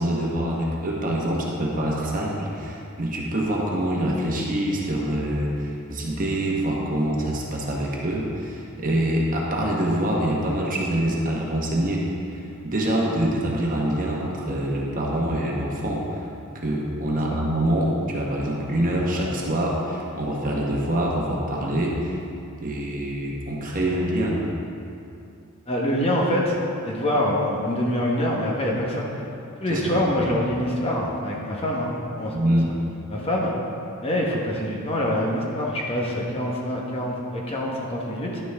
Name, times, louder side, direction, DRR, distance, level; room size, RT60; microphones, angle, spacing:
voice 1, 0.0-12.1 12.3-16.2 16.5-22.2 22.6-24.4 29.7-30.4 32.3-32.7, right 1 dB, 40° right, -3 dB, 1.2 m, -25 dB
voice 2, 25.7-29.1 29.6-32.6 33.1-33.5 34.0-38.4, left 1 dB, 25° left, -3 dB, 1.1 m, -25 dB
11.0 x 6.1 x 3.5 m, 2.6 s
head